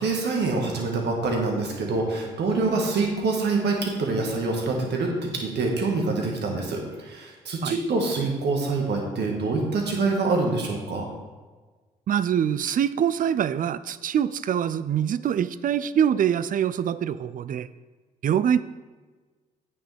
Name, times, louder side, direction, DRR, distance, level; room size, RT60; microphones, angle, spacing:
voice 1, 0.0-11.1, right 3 dB, 60° right, 1 dB, 1.8 m, -25 dB
voice 2, 12.1-17.7 18.2-18.6, right 9 dB, 45° right, 16 dB, 0.4 m, -24 dB
8.8 x 6.9 x 3.5 m, 1.3 s
hypercardioid pair, 45°, 19 cm